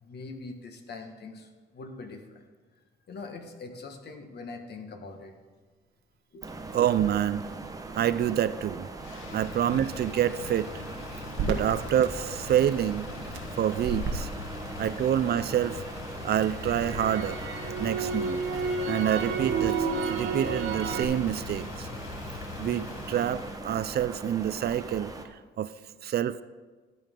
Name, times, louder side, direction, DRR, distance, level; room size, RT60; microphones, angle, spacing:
voice 1, 0.0-2.4 3.1-5.4 6.3-6.5 9.2-9.4 11.3-11.6 16.2-16.3 17.6-17.7, left 3 dB, 55° left, 5 dB, 1.5 m, -42 dB
sound 1, 6.4-25.3, right 2 dB, 15° right, 1.0 m, -41 dB
voice 2, 6.7-7.5 7.9-8.9 9.3-10.8 11.1-13.1 13.5-14.3 14.8-15.8 16.2-17.4 17.8-18.4 18.9-21.9 22.6-25.7 26.0-26.4, right 10 dB, 55° right, 15 dB, 0.4 m, -27 dB
Motor vehicle (road), 9.0-23.6, left 6 dB, 85° left, 1.0 m, -42 dB
Crackle, 11.4-15.5 15.9-21.0, right 5 dB, 75° right, 1.3 m, -32 dB
13.5 x 9.4 x 3.8 m, 1.4 s
cardioid pair, 90°, 20 cm